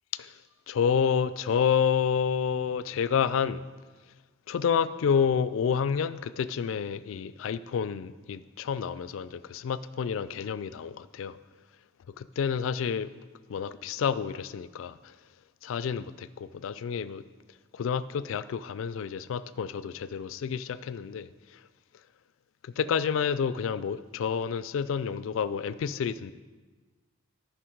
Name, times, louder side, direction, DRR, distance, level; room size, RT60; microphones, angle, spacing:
voice 1, 0.7-3.6 4.5-11.4 12.2-13.1 13.5-15.0 15.6-17.2 17.7-21.3 22.6-26.3, left 7 dB, 75° left, 0.3 m, -29 dB
10.0 x 5.6 x 4.5 m
head